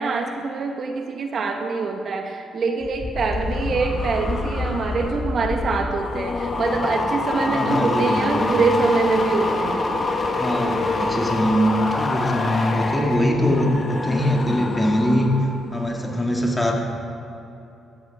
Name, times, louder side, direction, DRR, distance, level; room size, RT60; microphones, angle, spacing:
voice 1, 0.0-9.8, right 4 dB, 55° right, 4 dB, 1.2 m, -24 dB
sound 1, 2.8-15.5 15.8-16.2, left 3 dB, 35° left, 1.4 m, -26 dB
voice 2, 7.5-8.5 10.3-15.3 15.7-16.8, equal, 15° left, 0 dB, 2.1 m, -22 dB
14.0 x 13.5 x 3.5 m, 2.7 s
cardioid pair, 90°, 0 cm